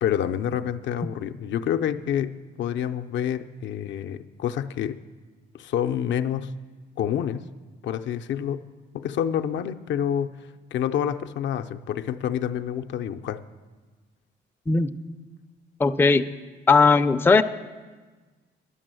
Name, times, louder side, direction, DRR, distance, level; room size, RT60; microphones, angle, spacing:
voice 1, 0.0-5.0 5.5-6.5 7.0-7.4 7.8-8.6 8.9-10.3 10.7-13.4, left 9 dB, 70° left, 8 dB, 0.5 m, -28 dB
voice 2, 15.8-16.2 16.7-17.4, left 4 dB, 10° left, 9 dB, 0.4 m, -18 dB
11.0 x 6.1 x 7.6 m, 1.3 s
cardioid pair, 90°, 20 cm